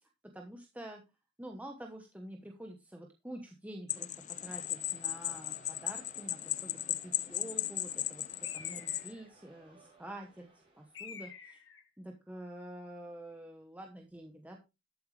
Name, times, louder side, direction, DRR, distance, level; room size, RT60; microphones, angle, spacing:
voice 1, 0.0-1.0 1.4-4.1 4.4-10.5 10.7-11.6 12.0-14.6, right 1 dB, 10° right, 2 dB, 1.1 m, -47 dB
sound 1, 3.9-9.1, left 12 dB, 40° left, 0.5 m, -36 dB
sound 2, 4.3-11.1, right 3 dB, 30° right, 4.3 m, -61 dB
Bird, 8.4-9.3 10.9-11.9, left 6 dB, 85° left, 1.9 m, -49 dB
12.5 x 7.9 x 3.3 m, 0.26 s
head